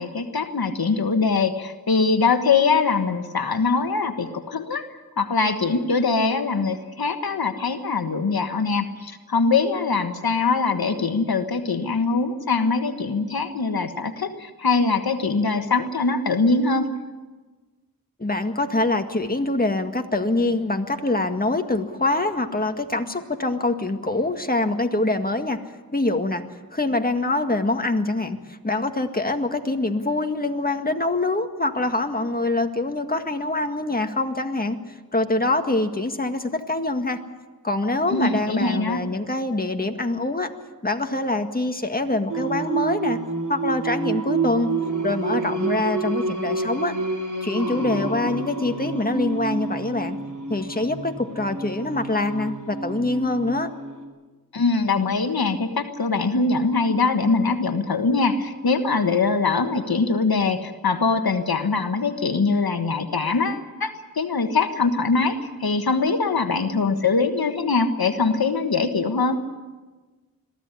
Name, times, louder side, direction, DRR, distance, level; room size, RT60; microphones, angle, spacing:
voice 1, 0.0-4.9 5.2-16.9 38.1-39.0 54.5-69.4, left 4 dB, 80° left, 7 dB, 1.4 m, -22 dB
voice 2, 18.2-25.6 25.9-26.4 26.7-37.2 37.6-40.5 40.8-43.2 43.5-44.7 45.0-47.0 47.4-50.2 50.5-53.7, left 2 dB, 25° left, 5 dB, 1.9 m, -24 dB
Singing, 42.3-54.0, right 3 dB, 55° right, 3.9 m, -29 dB
22.0 x 15.0 x 9.8 m, 1.3 s
wide cardioid pair, 50°, 36 cm